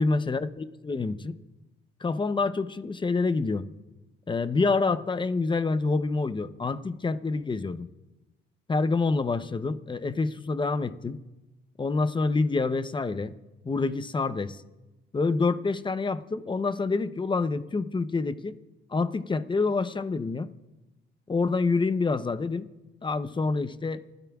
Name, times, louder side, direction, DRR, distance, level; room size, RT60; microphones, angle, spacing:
voice 1, 0.0-1.4 2.0-3.7 4.3-7.9 8.7-11.2 11.8-13.3 13.6-14.6 15.1-18.6 18.9-20.5 21.3-22.7 23.0-24.0, left 3 dB, 25° left, 12 dB, 0.7 m, -27 dB
29.5 x 12.5 x 2.4 m, 1.1 s
cardioid pair, 90°, 20 cm